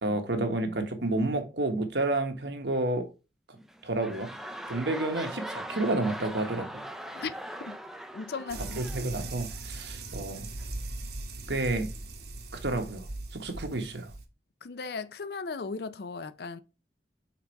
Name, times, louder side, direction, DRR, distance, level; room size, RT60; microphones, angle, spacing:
voice 1, 0.0-3.1 3.8-4.3 4.7-6.7 8.8-10.5 11.5-11.9 12.6-13.1 13.3-14.1, right 2 dB, 85° right, 1.3 m, -30 dB
sound 1, 3.6-9.9 10.6-10.7, equal, ahead, 0.4 m, -41 dB
voice 2, 7.1-7.8 8.1-8.8 14.6-16.6, left 4 dB, 65° left, 0.5 m, -37 dB
sound 2, 8.5-14.3, right 2 dB, 70° right, 1.1 m, -39 dB
5.8 x 4.0 x 4.5 m
head